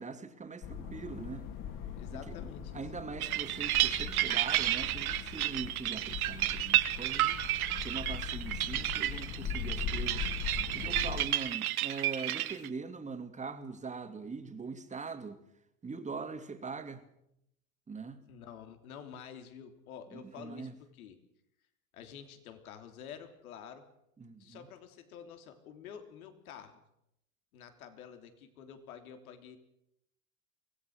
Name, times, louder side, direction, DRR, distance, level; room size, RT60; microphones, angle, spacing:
voice 1, 0.0-1.5 2.1-2.4 2.7-7.3 7.8-15.4 15.8-17.0 17.9-18.2 20.1-20.8 24.2-24.7, right 4 dB, 15° right, 7 dB, 2.4 m, -42 dB
sound 1, 0.6-11.3, left 8 dB, 45° left, 3.7 m, -40 dB
voice 2, 2.0-2.8 7.2-7.6 18.3-20.7 21.0-21.2 21.9-23.8 24.4-26.8 27.5-29.6, left 8 dB, 80° left, 7 dB, 3.4 m, -49 dB
sound 2, 3.2-12.7, right 14 dB, 80° right, 1.6 m, -31 dB
24.0 x 17.5 x 6.5 m, 0.78 s
hypercardioid pair, 110°, 43 cm